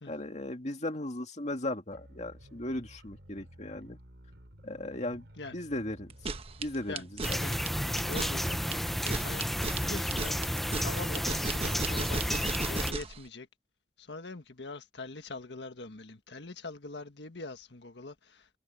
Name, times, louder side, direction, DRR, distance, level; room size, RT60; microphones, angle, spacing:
voice 1, 0.1-4.0 4.6-5.3 5.5-6.3 6.6-7.4, left 1 dB, 40° left, 2.3 m, -37 dB
sound 1, 1.9-9.5, equal, 75° right, 4.3 m, -53 dB
sound 2, 6.1-13.2, right 3 dB, 35° right, 1.0 m, -36 dB
sound 3, 7.2-12.9, equal, ahead, 0.4 m, -31 dB
voice 2, 7.4-9.4 9.8-10.4 10.8-13.5 14.0-18.5, left 3 dB, 80° left, 1.6 m, -43 dB
head